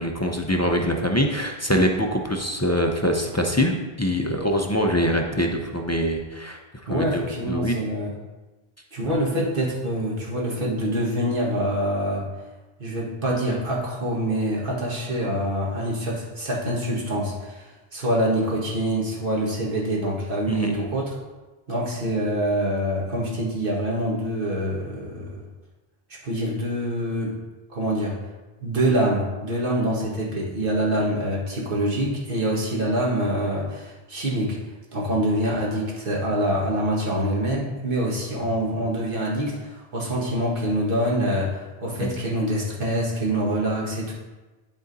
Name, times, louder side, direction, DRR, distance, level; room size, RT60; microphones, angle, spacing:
voice 1, 0.0-6.6 6.9-7.7 9.0-9.1 20.5-20.8 42.0-42.2, equal, 20° left, 1 dB, 0.4 m, -24 dB
voice 2, 6.9-8.1 8.9-12.3 12.8-21.1 21.7-25.4 26.2-27.4 27.7-28.2 28.6-34.6 34.9-44.1, right 1 dB, 60° right, -4 dB, 1.8 m, -25 dB
10.5 x 3.8 x 4.0 m, 1.2 s
omnidirectional pair, 1.0 m